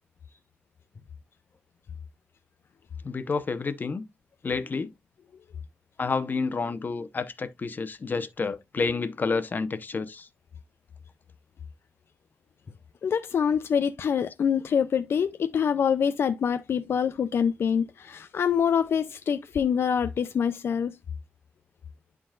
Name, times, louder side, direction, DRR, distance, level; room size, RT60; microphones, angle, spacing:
voice 1, 3.0-4.0 4.4-4.9 6.0-10.3, left 4 dB, 50° left, 0.9 m, -29 dB
voice 2, 13.0-21.0, left 7 dB, 80° left, 0.5 m, -25 dB
11.5 x 3.9 x 2.4 m
wide cardioid pair, 85°, 4 cm